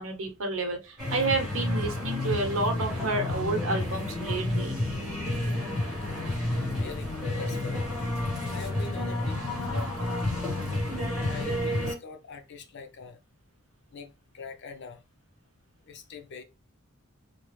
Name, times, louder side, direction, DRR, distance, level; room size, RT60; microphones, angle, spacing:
voice 1, 0.0-4.8, right 3 dB, 65° right, 1.0 m, -30 dB
sound 1, 1.0-11.9, left 1 dB, 5° right, 1.3 m, -30 dB
voice 2, 6.7-7.9 8.5-10.5 11.2-13.2 13.9-15.0 15.8-16.4, left 5 dB, 55° left, 0.6 m, -44 dB
2.9 x 2.0 x 3.1 m
head